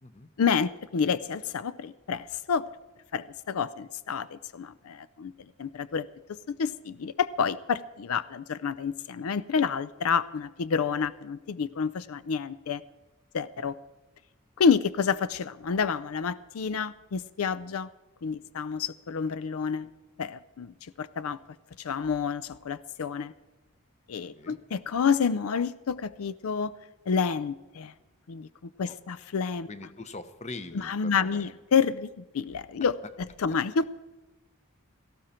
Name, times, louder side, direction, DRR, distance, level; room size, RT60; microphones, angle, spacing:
voice 1, 0.4-2.6 3.1-5.3 5.6-6.1 6.5-12.8 13.3-13.8 14.6-17.9 18.2-19.9 20.2-21.4 21.8-23.3 24.1-26.7 27.1-27.9 28.3-28.5 28.8-29.7 30.8-32.9 33.4-34.0, left 6 dB, 80° left, 16 dB, 0.5 m, -29 dB
voice 2, 29.7-31.5, left 2 dB, 30° left, 11 dB, 0.8 m, -42 dB
17.5 x 14.5 x 4.4 m, 1.1 s
head